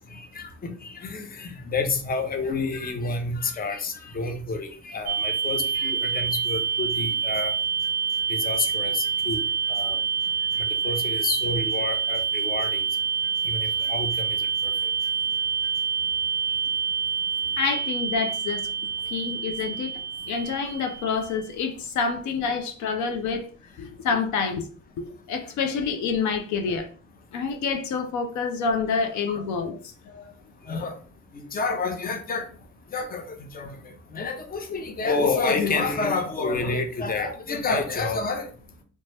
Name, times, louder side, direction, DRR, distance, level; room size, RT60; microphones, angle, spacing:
voice 1, 0.1-7.5 8.3-9.4 9.7-10.0 10.8-12.8 13.5-14.1 14.6-14.7 29.3-29.4 30.7-31.0 31.3-32.5 32.9-33.7 34.1-38.5, left 3 dB, 30° left, 0.6 m, -29 dB
sound 1, 5.1-21.4, right 6 dB, 65° right, 0.5 m, -27 dB
voice 2, 17.6-18.7 19.1-19.9 20.3-23.5 23.8-24.7 25.0-26.9 27.3-30.2, left 5 dB, 70° left, 0.5 m, -27 dB
2.7 x 2.2 x 3.2 m
cardioid pair, 90°, 30 cm